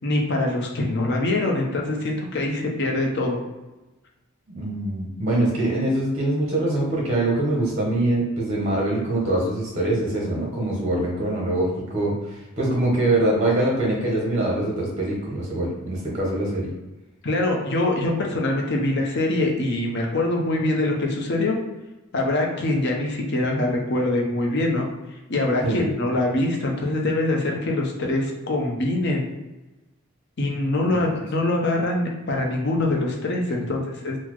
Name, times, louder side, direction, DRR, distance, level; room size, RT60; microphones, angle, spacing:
voice 1, 0.0-3.4 17.2-21.6 22.1-24.9 25.3-29.3 30.4-34.2, left 2 dB, 50° left, 0 dB, 0.6 m, -24 dB
voice 2, 4.5-16.7 25.6-25.9, right 1 dB, 30° right, -3 dB, 0.7 m, -23 dB
4.0 x 2.0 x 3.0 m, 1.1 s
head